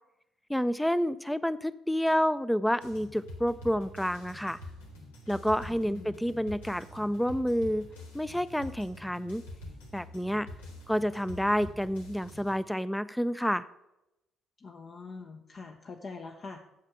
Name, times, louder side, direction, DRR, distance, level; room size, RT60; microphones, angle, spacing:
voice 1, 0.5-4.6 5.3-7.9 8.1-9.4 9.9-10.5 10.9-13.7, equal, 5° left, 16 dB, 0.5 m, -29 dB
sound 1, 2.8-12.6, left 1 dB, 75° left, 1.7 m, -46 dB
voice 2, 5.7-6.2 14.6-16.6, left 4 dB, 40° left, 3 dB, 0.8 m, -44 dB
8.9 x 7.4 x 5.9 m, 0.92 s
figure-of-eight pair, 45°, 0 cm